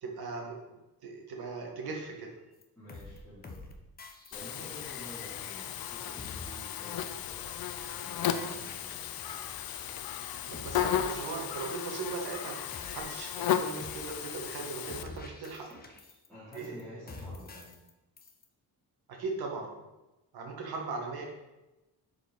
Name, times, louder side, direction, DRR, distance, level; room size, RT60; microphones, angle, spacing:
voice 1, 0.0-2.4 10.5-12.6 12.9-15.7 16.5-17.0 19.1-19.8 20.3-21.3, right 4 dB, 80° right, 1 dB, 1.8 m, -39 dB
sound 1, 2.6-2.7 2.9-3.2 3.4-3.7 4.0-5.4 5.6-5.9 6.2-6.4 6.7-7.0 7.3-7.5 7.8-8.1 8.3-9.7 10.0-10.3 10.5-11.9 12.2-12.4 12.7-13.5 13.8-14.1 14.3-14.6 14.9-16.3 16.5-16.8 17.1-17.9 18.2-18.4, left 3 dB, 25° left, 0.9 m, -48 dB
voice 2, 2.8-3.7 4.3-7.6 8.0-9.0 16.3-17.7, left 1 dB, ahead, -13 dB, 2.9 m, -49 dB
Buzz, 4.3-15.0, left 9 dB, 70° left, 0.7 m, -35 dB
11.0 x 4.9 x 4.0 m, 1.0 s
wide cardioid pair, 165°, 37 cm